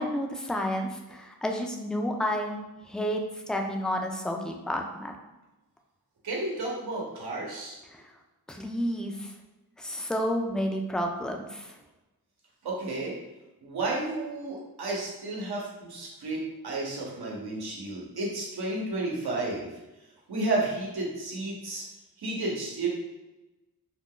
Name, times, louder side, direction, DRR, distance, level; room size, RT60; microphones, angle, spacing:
voice 1, 0.0-2.6 2.9-3.2 3.5-5.1 7.9-8.0 8.5-9.3 9.8-11.7, equal, ahead, 2 dB, 0.3 m, -30 dB
voice 2, 6.2-7.8 12.6-13.1 13.6-19.7 20.3-21.8 22.2-22.9, right 2 dB, 85° right, -3 dB, 0.9 m, -32 dB
2.5 x 2.2 x 3.6 m, 1.0 s
cardioid pair, 65°, 37 cm